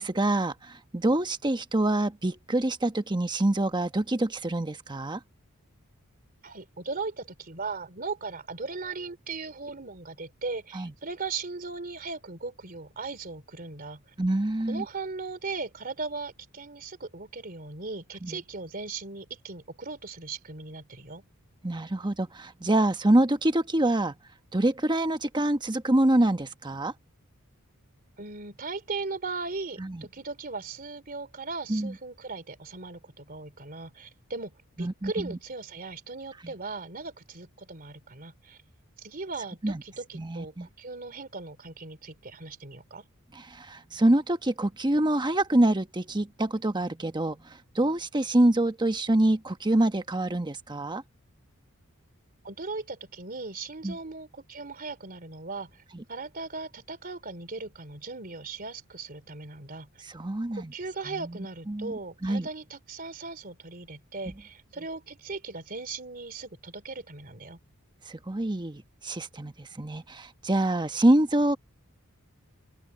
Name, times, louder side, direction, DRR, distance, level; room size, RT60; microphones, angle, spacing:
voice 1, 0.0-5.2 10.7-10.9 14.2-14.8 18.2-18.4 21.6-24.1 24.5-26.9 29.8-30.1 31.7-31.9 34.8-35.4 36.4-36.5 39.6-39.8 40.1-40.7 43.3-51.0 53.8-54.0 55.9-56.0 60.1-60.7 61.1-61.3 61.7-62.5 68.1-71.6, right 1 dB, 20° right, 1.1 m, -26 dB
voice 2, 6.4-14.0 14.7-21.2 28.2-38.6 39.0-43.1 52.4-55.8 56.1-59.9 60.5-67.6, right 3 dB, 40° right, 3.5 m, -38 dB
open air
head